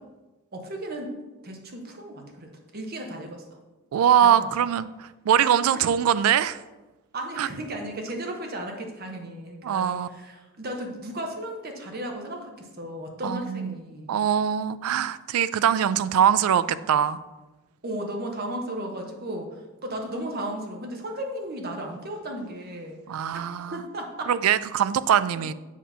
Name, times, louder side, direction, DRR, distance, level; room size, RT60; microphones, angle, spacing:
voice 1, 0.5-1.2 1.4-3.6 4.2-4.5 7.1-14.2 17.8-23.0 23.3-24.3, right 1 dB, 45° right, 3 dB, 0.9 m, -35 dB
voice 2, 3.9-6.6 7.4-7.5 9.6-10.1 13.2-13.7 14.1-17.2 23.1-23.8 24.3-25.5, right 9 dB, 85° right, 16 dB, 0.3 m, -22 dB
7.3 x 2.8 x 5.6 m, 1.1 s
head